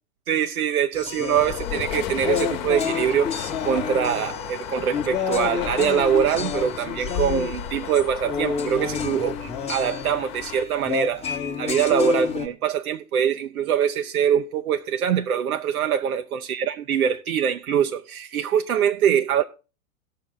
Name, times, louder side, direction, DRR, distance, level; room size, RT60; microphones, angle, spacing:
voice 1, 0.3-19.4, right 8 dB, 80° right, 0.7 m, -23 dB
sound 1, 0.9-12.5, left 6 dB, 15° left, 1.0 m, -30 dB
sound 2, 1.3-10.6, left 11 dB, 45° left, 1.1 m, -33 dB
17.0 x 6.7 x 3.8 m
hypercardioid pair, 105°, 43 cm